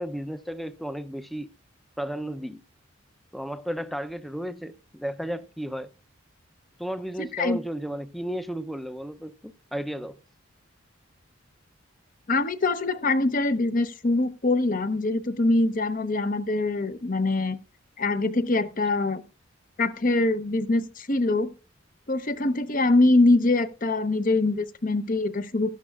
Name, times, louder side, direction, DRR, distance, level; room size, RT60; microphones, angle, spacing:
voice 1, 0.0-1.5 2.0-2.6 3.3-5.9 6.8-10.2, equal, ahead, 0.5 m, -33 dB
voice 2, 7.2-7.6 12.3-17.6 18.0-19.2 19.8-21.5 22.1-25.7, left 2 dB, 40° left, 0.8 m, -23 dB
16.0 x 12.5 x 2.4 m
head